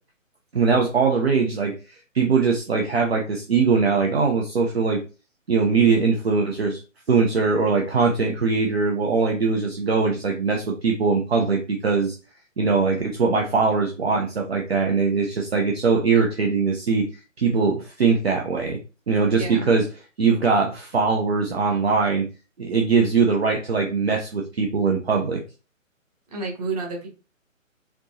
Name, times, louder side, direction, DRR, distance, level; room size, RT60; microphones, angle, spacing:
voice 1, 0.5-5.0 5.5-6.8 7.1-12.1 12.6-17.0 17.4-18.8 19.1-19.8 20.2-22.3 22.6-25.4, right 4 dB, 50° right, 1 dB, 0.8 m, -21 dB
voice 2, 26.3-27.1, right 3 dB, 30° right, 1 dB, 1.3 m, -30 dB
4.4 x 2.8 x 2.8 m, 0.32 s
figure-of-eight pair, 140°, 41 cm